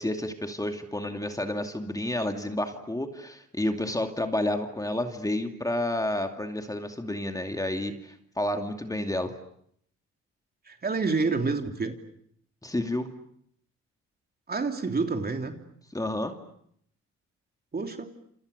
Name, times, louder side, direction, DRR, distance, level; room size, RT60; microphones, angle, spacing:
voice 1, 0.0-9.3 12.6-13.1 15.9-16.3, left 1 dB, 10° left, 5 dB, 2.5 m, -30 dB
voice 2, 10.7-11.9 14.5-15.5 17.7-18.1, right 4 dB, 30° right, 5 dB, 3.2 m, -28 dB
28.5 x 28.0 x 6.7 m, 0.69 s
cardioid pair, 90°, 30 cm